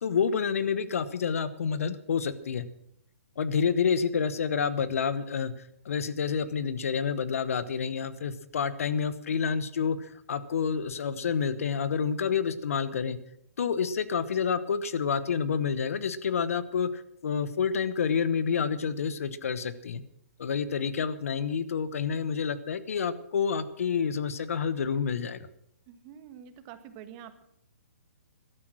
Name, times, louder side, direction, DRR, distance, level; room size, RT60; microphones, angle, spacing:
voice 1, 0.0-2.7 3.4-5.5 5.8-13.2 13.6-20.0 20.4-25.5, left 6 dB, 70° left, 15 dB, 1.1 m, -28 dB
voice 2, 25.9-27.4, right 9 dB, 35° right, 10 dB, 1.5 m, -47 dB
15.0 x 12.5 x 6.3 m, 0.75 s
hypercardioid pair, 130°, 8 cm